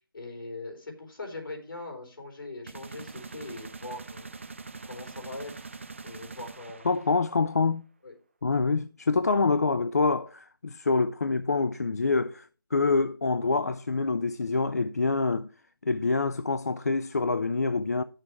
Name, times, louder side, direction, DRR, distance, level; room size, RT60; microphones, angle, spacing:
voice 1, 0.1-4.3 4.9-5.7 6.0-6.9 8.0-8.1, left 2 dB, 65° left, 3.9 m, -41 dB
sound 1, 2.7-7.4, right 3 dB, 35° right, 0.4 m, -43 dB
voice 2, 6.9-7.8 8.4-15.5 15.8-18.0, left 4 dB, 45° left, 0.4 m, -26 dB
9.4 x 6.4 x 4.4 m
hypercardioid pair, 175°, 12 cm